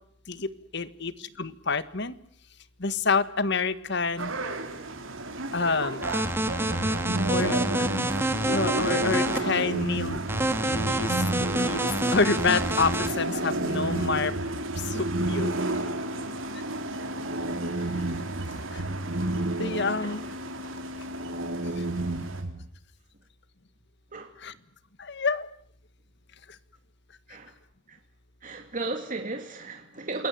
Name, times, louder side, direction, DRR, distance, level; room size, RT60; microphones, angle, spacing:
voice 1, 0.3-2.1 2.8-4.3 5.5-6.0 7.3-8.1 8.5-10.2 10.6-11.1 11.6-11.8 12.1-14.3 14.8-15.5 19.3-20.2 24.4-24.5 25.0-25.5, left 4 dB, 60° left, 14 dB, 1.6 m, -28 dB
sound 1, 4.2-22.4, right 2 dB, 90° right, 4.5 m, -34 dB
sound 2, 6.0-9.4 10.3-13.1, right 1 dB, 10° right, 1.9 m, -27 dB
sound 3, 6.6-22.7, right 1 dB, 70° right, 1.9 m, -33 dB
voice 2, 28.4-30.3, right 3 dB, 40° right, 4 dB, 2.5 m, -34 dB
28.0 x 21.5 x 9.2 m, 0.64 s
head